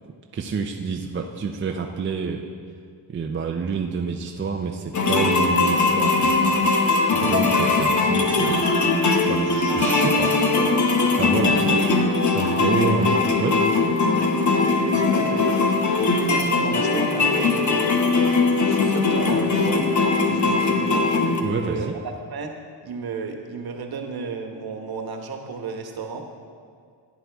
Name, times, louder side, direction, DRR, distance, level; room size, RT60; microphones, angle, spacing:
voice 1, 0.3-2.5 3.1-6.4 7.1-8.7 9.3-10.4 10.8-11.9 12.2-13.7 21.4-21.9, right 5 dB, 25° right, 2 dB, 0.5 m, -28 dB
sound 1, 4.9-21.4, left 3 dB, 40° left, 1.0 m, -20 dB
voice 2, 14.3-17.9 18.6-19.9 20.2-21.1 21.6-21.9 22.3-22.5 22.8-26.2, right 4 dB, 55° right, 3 dB, 1.3 m, -33 dB
15.5 x 9.3 x 3.5 m, 2.1 s
wide cardioid pair, 135°, 44 cm